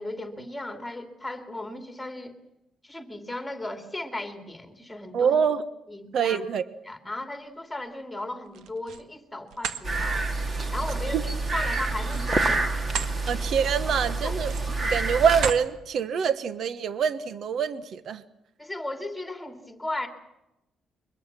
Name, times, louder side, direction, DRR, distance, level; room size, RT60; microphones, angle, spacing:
voice 1, 0.0-2.3 2.8-5.4 5.9-6.4 6.8-10.3 10.7-12.8 14.2-14.3 18.6-20.1, left 2 dB, 5° left, 6 dB, 2.8 m, -36 dB
voice 2, 5.1-5.6 6.1-6.6 11.1-11.2 13.3-14.5 14.8-18.2, right 7 dB, 55° right, 13 dB, 1.2 m, -25 dB
sound 1, 8.4-9.1 9.5-9.8 12.0-13.2 13.6-13.8 14.4-14.8 15.3-15.7, right 8 dB, 75° right, 1.6 m, -34 dB
sound 2, 9.8-15.5, right 3 dB, 25° right, 2.2 m, -28 dB
23.5 x 21.5 x 7.5 m, 0.89 s
cardioid pair, 155°, 0 cm